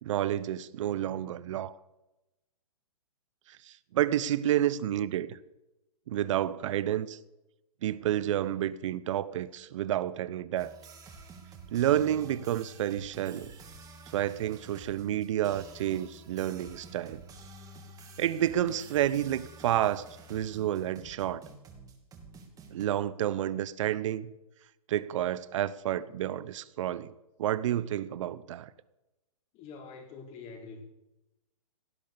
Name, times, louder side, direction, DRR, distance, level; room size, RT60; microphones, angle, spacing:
voice 1, 0.0-1.7 3.5-5.4 6.1-7.2 7.8-10.8 11.7-13.5 14.1-17.2 18.2-21.4 22.7-24.3 24.9-27.1 27.4-28.7, right 12 dB, 55° right, 18 dB, 1.0 m, -30 dB
sound 1, 10.5-22.8, right 3 dB, 20° right, 2.8 m, -50 dB
voice 2, 29.5-30.8, left 4 dB, 30° left, 4 dB, 3.8 m, -45 dB
17.5 x 10.5 x 7.0 m, 0.96 s
hypercardioid pair, 125°, 19 cm